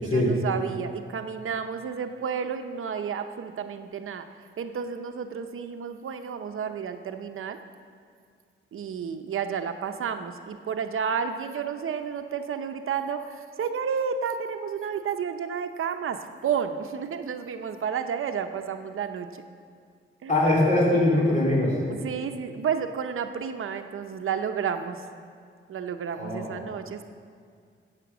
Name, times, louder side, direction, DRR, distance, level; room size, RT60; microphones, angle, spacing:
voice 1, 0.0-4.3 4.6-7.6 8.7-19.3 20.2-20.4 21.9-25.0 25.7-27.1, right 7 dB, 75° right, 7 dB, 0.7 m, -31 dB
voice 2, 20.3-21.7 26.1-26.5, left 1 dB, 35° left, -5 dB, 3.1 m, -22 dB
11.0 x 8.3 x 7.1 m, 2.2 s
wide cardioid pair, 115°, 21 cm